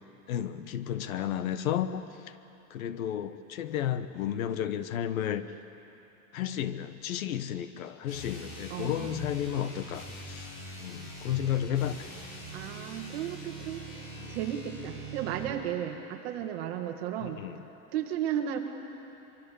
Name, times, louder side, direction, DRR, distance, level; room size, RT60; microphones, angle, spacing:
voice 1, 0.3-2.4 2.7-5.4 6.3-10.5 10.8-12.1 14.2-14.4 17.2-17.6, left 10 dB, 65° left, 12 dB, 1.2 m, -32 dB
sound 1, 8.0-15.6, right 2 dB, 30° left, 3.3 m, -43 dB
voice 2, 8.7-9.2 12.5-17.4 17.9-18.6, right 10 dB, 45° right, 4 dB, 2.0 m, -34 dB
24.5 x 23.5 x 7.0 m, 3.0 s
supercardioid pair, 170°, 44 cm